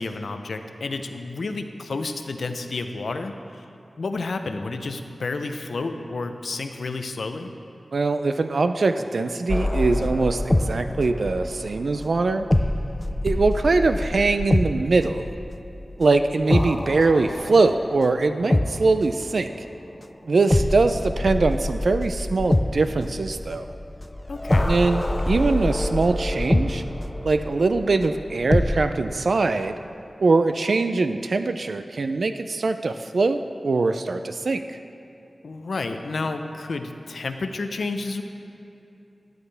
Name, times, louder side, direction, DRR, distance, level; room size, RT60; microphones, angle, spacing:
voice 1, 0.0-3.6 4.0-7.5 24.3-24.8 35.4-38.2, left 3 dB, 85° left, 7 dB, 0.6 m, -30 dB
voice 2, 7.9-12.5 13.2-15.4 16.0-19.5 20.3-23.7 24.7-26.8 27.2-29.7 30.2-34.8, right 3 dB, 70° right, 9 dB, 0.3 m, -22 dB
sound 1, 9.5-19.3 20.5-28.9, left 1 dB, 20° left, 0.3 m, -26 dB
12.5 x 9.5 x 3.4 m, 2.8 s
wide cardioid pair, 90°, 0 cm